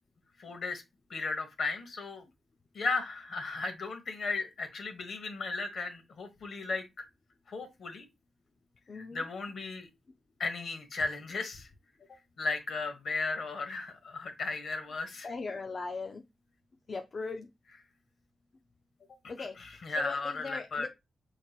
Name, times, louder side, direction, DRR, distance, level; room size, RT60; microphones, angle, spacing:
voice 1, 0.4-0.8 1.1-2.2 2.7-7.1 7.5-8.1 8.9-9.9 10.4-11.7 12.4-15.3 19.4-20.9, left 3 dB, 60° left, 1.3 m, -35 dB
voice 2, 8.9-9.2 15.2-16.2 16.9-17.5 19.3-19.6 20.0-20.9, left 4 dB, 40° left, 0.5 m, -38 dB
6.3 x 3.5 x 2.4 m
wide cardioid pair, 140°, 0 cm